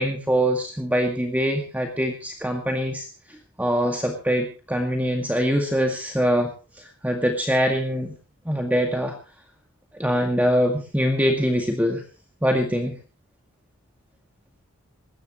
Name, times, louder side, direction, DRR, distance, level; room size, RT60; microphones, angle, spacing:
voice 1, 0.0-6.5 6.8-8.1 8.5-9.1 10.0-12.0 12.4-13.0, equal, 5° right, 3 dB, 2.0 m, -23 dB
20.0 x 17.0 x 3.1 m, 0.33 s
head